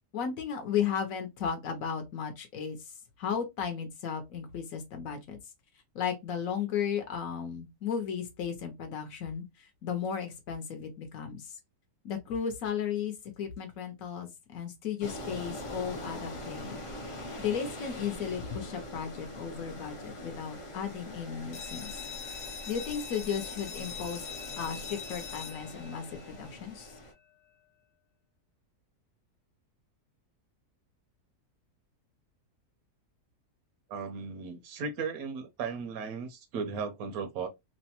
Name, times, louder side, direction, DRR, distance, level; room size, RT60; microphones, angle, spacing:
voice 1, 0.1-2.8 3.2-5.4 5.9-11.6 12.0-16.8 17.4-21.9 22.7-24.2 24.6-26.9, left 7 dB, 65° left, 1.0 m, -35 dB
sound 1, 15.0-27.1, left 1 dB, 40° left, 0.4 m, -43 dB
sound 2, 21.5-27.0, left 6 dB, 85° left, 1.2 m, -43 dB
voice 2, 33.9-37.5, right 5 dB, 70° right, 1.0 m, -36 dB
3.1 x 2.1 x 2.8 m
omnidirectional pair, 1.7 m